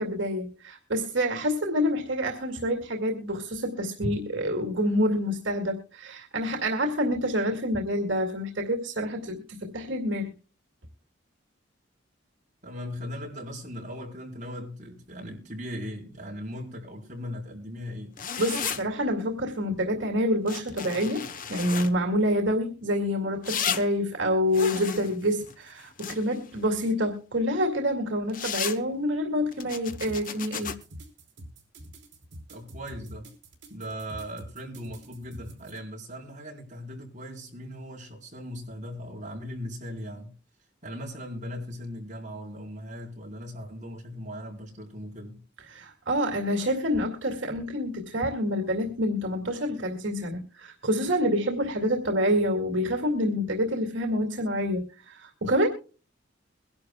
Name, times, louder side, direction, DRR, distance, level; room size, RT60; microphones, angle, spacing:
voice 1, 0.0-10.3 18.4-30.7 45.7-55.7, equal, 80° right, 2.3 m, -27 dB
voice 2, 12.6-18.1 32.5-33.3 33.7-40.3 40.8-45.4, equal, 40° right, 4.4 m, -38 dB
sound 1, 18.2-18.8 20.5-21.9 23.4-23.8 24.5-26.5 28.3-28.8 29.5-30.7, left 7 dB, 45° left, 0.9 m, -33 dB
sound 2, 29.9-35.8, right 1 dB, 65° right, 4.5 m, -45 dB
22.5 x 11.5 x 2.3 m
head